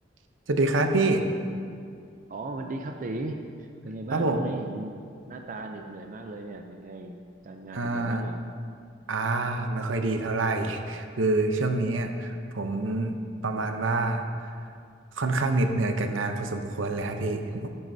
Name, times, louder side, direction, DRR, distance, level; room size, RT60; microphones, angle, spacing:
voice 1, 0.5-1.2 4.1-4.4 7.7-8.2 9.1-13.2 13.4-14.2 15.2-17.7, right 2 dB, 80° right, 6 dB, 0.7 m, -26 dB
voice 2, 2.3-7.2 7.4-8.4, right 2 dB, 45° right, 4 dB, 0.5 m, -37 dB
10.5 x 10.0 x 2.7 m, 2.3 s
head